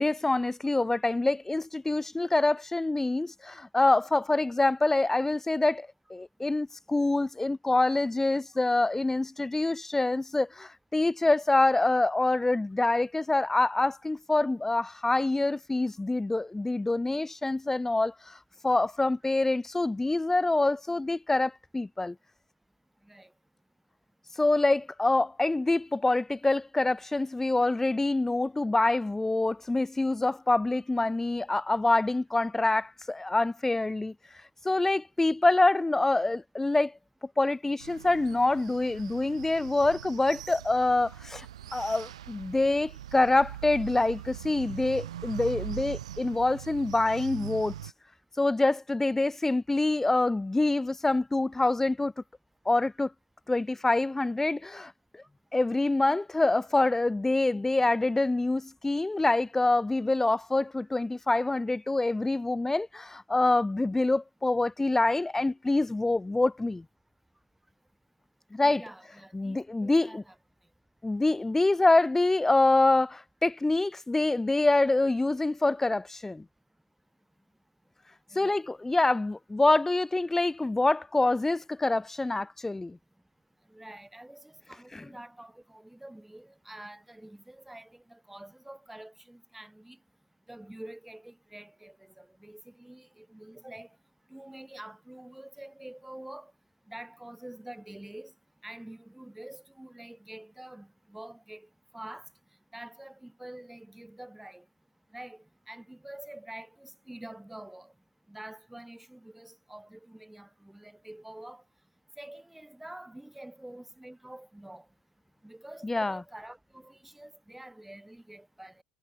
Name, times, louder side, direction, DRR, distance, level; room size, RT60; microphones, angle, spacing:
voice 1, 0.0-18.4 18.6-22.1 24.4-34.1 34.6-36.9 37.4-41.5 41.7-47.7 48.4-52.1 52.6-53.1 53.5-54.9 55.5-66.8 68.5-68.8 69.3-70.2 71.0-76.4 78.3-83.0 84.9-85.0 115.8-116.2, left 2 dB, 10° left, 1.5 m, -26 dB
sound 1, 37.8-47.9, right 11 dB, 70° right, 1.8 m, -42 dB
voice 2, 68.6-70.3 78.3-78.6 83.7-90.0 90.5-93.9 94.3-96.5 96.9-98.3 98.6-101.7 101.9-102.3 102.7-104.6 105.1-107.9 108.3-111.6 112.2-114.8 115.4-118.8, right 1 dB, 5° right, 4.2 m, -47 dB
figure-of-eight pair, 70°, 3 cm